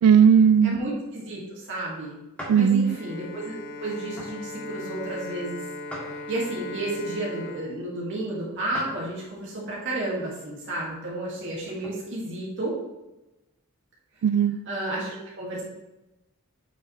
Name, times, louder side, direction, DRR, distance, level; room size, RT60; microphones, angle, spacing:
voice 1, 0.0-0.8 2.5-3.0 14.2-14.6, right 7 dB, 90° right, 17 dB, 0.3 m, -17 dB
voice 2, 0.6-2.2 2.5-5.6 6.3-12.7 14.7-15.6, right 2 dB, 60° right, -5 dB, 1.9 m, -32 dB
sound 1, 2.4-2.7 3.2-3.4 4.1-4.4 5.9-6.6 8.7-9.0 9.5-9.6 11.3-12.0, equal, 5° left, 1.8 m, -40 dB
Bowed string instrument, 2.8-8.9, left 3 dB, 50° left, 0.8 m, -39 dB
8.4 x 5.6 x 3.1 m, 1.0 s
head